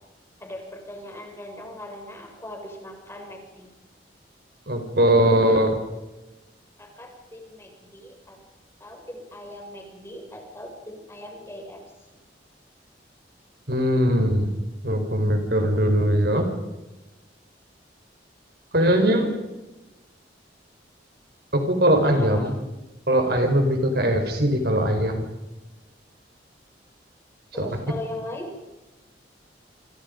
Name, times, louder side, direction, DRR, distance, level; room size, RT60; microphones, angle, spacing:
voice 1, 0.4-3.7 6.8-8.4 8.8-11.8 18.9-19.4 22.0-22.5 27.5-28.5, left 1 dB, 15° left, 1 dB, 6.3 m, -39 dB
voice 2, 4.7-5.8 13.7-14.5 14.8-16.5 18.7-19.3 21.5-22.5 23.1-25.3 27.6-27.7, right 1 dB, 60° right, 5 dB, 4.8 m, -20 dB
28.5 x 27.0 x 5.3 m, 1.1 s
head